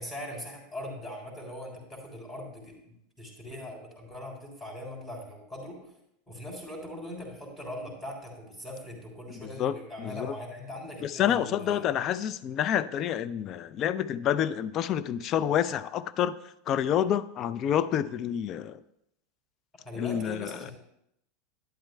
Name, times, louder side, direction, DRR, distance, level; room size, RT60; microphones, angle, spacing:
voice 1, 0.0-5.8 6.3-11.8 19.8-20.7, left 1 dB, 10° left, 0 dB, 3.2 m, -41 dB
voice 2, 9.3-10.3 11.0-16.3 16.7-18.8 20.0-20.5, left 10 dB, 40° left, 14 dB, 0.4 m, -28 dB
11.5 x 10.5 x 2.2 m, 0.80 s
figure-of-eight pair, 80°, 0 cm